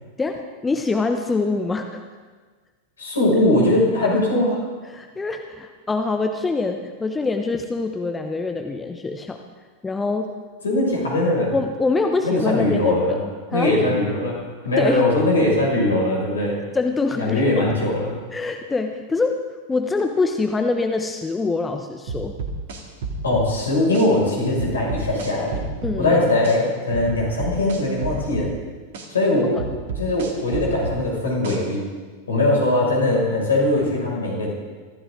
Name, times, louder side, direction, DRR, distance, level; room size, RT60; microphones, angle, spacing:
voice 1, 0.2-2.0 4.0-4.2 4.9-9.4 9.8-10.3 11.5-13.2 13.5-13.7 14.8-15.0 16.7-17.7 18.3-19.4 19.7-22.4 25.8-26.2 29.5-29.6, left 3 dB, 10° left, 5 dB, 0.9 m, -24 dB
voice 2, 3.0-4.6 10.6-11.5 12.2-13.2 13.5-16.6 17.2-18.1 23.2-25.6 26.0-28.5 29.1-29.6 30.0-31.9 32.3-34.5, left 1 dB, 70° left, -2 dB, 6.1 m, -20 dB
sound 1, 22.1-23.5 23.9-24.1 24.6-26.0 26.4-26.6 26.9-28.5 28.9-29.1 29.6-31.0 31.4-31.6, right 4 dB, 55° right, 2.2 m, -30 dB
24.0 x 14.5 x 3.8 m, 1.4 s
figure-of-eight pair, 90°, 0 cm